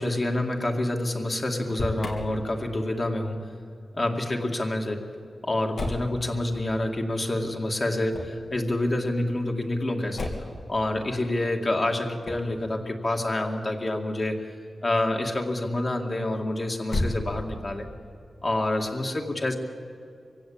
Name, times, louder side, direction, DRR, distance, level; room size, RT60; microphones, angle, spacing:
voice 1, 0.0-3.5 3.9-5.1 5.4-10.3 10.7-14.4 14.8-17.9 18.4-19.5, left 1 dB, 35° left, 2 dB, 2.2 m, -27 dB
Motor vehicle (road), 1.6-2.2 5.7-6.1 8.1-8.5 10.1-10.6 12.2-12.6 16.8-17.7, left 2 dB, 75° left, 3.0 m, -31 dB
24.5 x 16.0 x 8.8 m, 2.3 s
wide cardioid pair, 120°, 0 cm